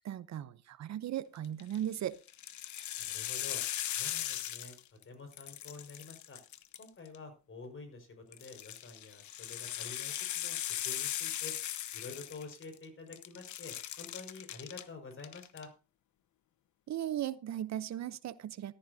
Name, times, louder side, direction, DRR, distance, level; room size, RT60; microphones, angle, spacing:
voice 1, 0.0-2.2 16.9-18.7, right 11 dB, 65° right, 16 dB, 0.8 m, -37 dB
sound 1, 1.4-1.8 2.3-5.0 5.3-7.2 8.3-12.8 13.1-14.8 15.2-15.6, left 12 dB, 70° left, 1.1 m, -39 dB
voice 2, 3.0-4.8 5.0-6.4 6.8-11.5 11.9-15.7, left 3 dB, 45° left, 6 dB, 5.4 m, -49 dB
14.0 x 13.5 x 2.8 m, 0.31 s
cardioid pair, 90°, 30 cm